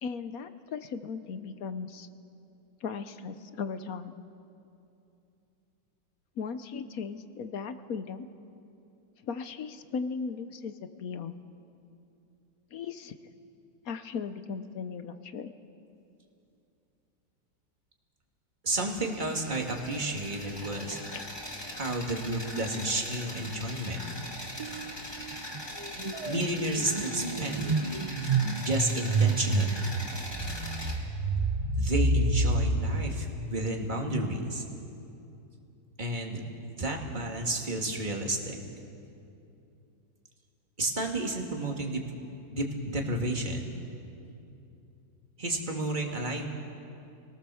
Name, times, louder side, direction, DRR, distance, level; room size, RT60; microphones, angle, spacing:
voice 1, 0.0-2.1 2.8-4.1 6.4-8.3 9.2-10.7 11.0-11.3 12.7-13.2 13.8-15.5 21.1-21.2, left 5 dB, 60° left, 11 dB, 1.1 m, -37 dB
voice 2, 18.6-21.0 21.8-24.1 26.2-27.8 28.6-29.8 31.8-34.6 36.0-36.4 36.8-38.6 40.8-42.0 42.5-43.7 45.4-46.5, right 1 dB, 25° right, 1 dB, 2.3 m, -31 dB
sound 1, 18.7-31.0, left 1 dB, 10° left, 2.6 m, -41 dB
sound 2, 24.6-24.9 25.2-34.0, right 3 dB, 45° right, 0.4 m, -29 dB
28.5 x 19.0 x 7.0 m, 2.7 s
omnidirectional pair, 2.1 m